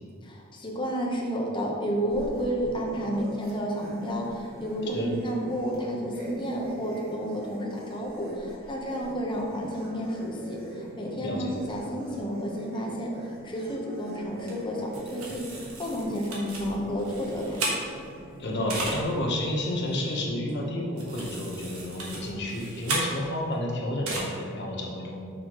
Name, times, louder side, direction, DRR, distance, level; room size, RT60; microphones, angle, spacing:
voice 1, 0.2-17.6, equal, 25° left, -1 dB, 0.9 m, -31 dB
sound 1, 2.1-20.3, right 1 dB, 45° right, 1.2 m, -43 dB
voice 2, 11.2-11.5 18.4-25.2, left 1 dB, 55° left, -1 dB, 1.1 m, -30 dB
sound 2, 14.5-14.6 14.9-18.2 18.7-19.0 20.5-20.6 21.0-23.5 24.1-24.2, right 2 dB, 90° right, 1.4 m, -34 dB
6.4 x 5.7 x 3.0 m, 2.3 s
head